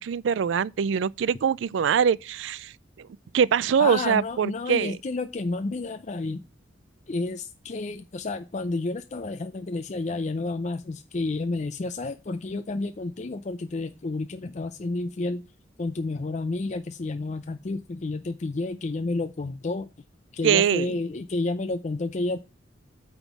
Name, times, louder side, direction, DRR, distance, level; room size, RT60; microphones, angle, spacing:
voice 1, 0.0-2.7 3.0-3.1 3.3-5.0 20.4-20.9, right 7 dB, 70° right, 0.3 m, -23 dB
voice 2, 3.8-6.4 7.1-15.4 15.8-19.9 20.3-22.4, left 3 dB, 40° left, 0.5 m, -30 dB
9.0 x 3.7 x 5.9 m
head